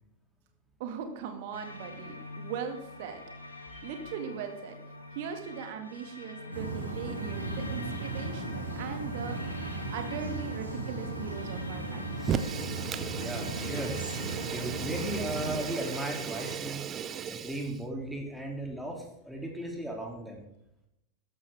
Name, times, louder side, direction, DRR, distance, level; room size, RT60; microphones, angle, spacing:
voice 1, 0.8-3.2 3.8-4.8 5.1-12.4, right 7 dB, 50° right, 6 dB, 2.1 m, -39 dB
sound 1, 1.5-16.6, left 2 dB, 85° left, 1.7 m, -45 dB
sound 2, 6.5-15.6, right 2 dB, 80° right, 2.9 m, -37 dB
Fire, 12.2-17.8, right 8 dB, 25° right, 0.8 m, -36 dB
voice 2, 13.1-14.1 14.5-16.8 17.3-20.4, right 1 dB, ahead, 1 dB, 2.9 m, -36 dB
13.0 x 12.0 x 3.6 m, 0.83 s
figure-of-eight pair, 90°, 0 cm